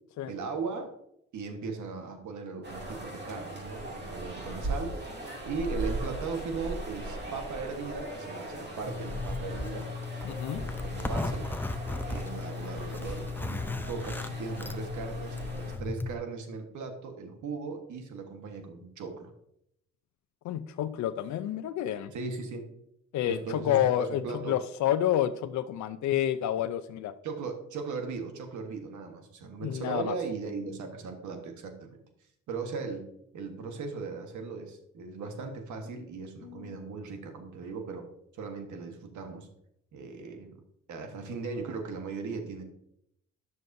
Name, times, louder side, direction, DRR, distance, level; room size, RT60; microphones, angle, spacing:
voice 1, 0.2-0.9 1.3-5.0 5.4-9.9 10.8-11.5 12.0-19.3 22.1-22.7 23.2-24.6 27.2-32.0 32.5-33.1 33.3-38.1 38.3-39.5 39.9-40.5 40.9-42.6, right 4 dB, 75° right, 5 dB, 1.4 m, -38 dB
sound 1, 2.6-15.8, right 1 dB, 35° right, 2.5 m, -39 dB
Zipper (clothing), 8.9-16.1, left 3 dB, 5° left, 0.5 m, -35 dB
voice 2, 10.2-10.6 20.4-22.1 23.1-27.1 29.6-30.1 36.4-36.8, left 11 dB, 70° left, 10 dB, 0.6 m, -29 dB
11.0 x 6.6 x 2.7 m, 0.76 s
cardioid pair, 90°, 30 cm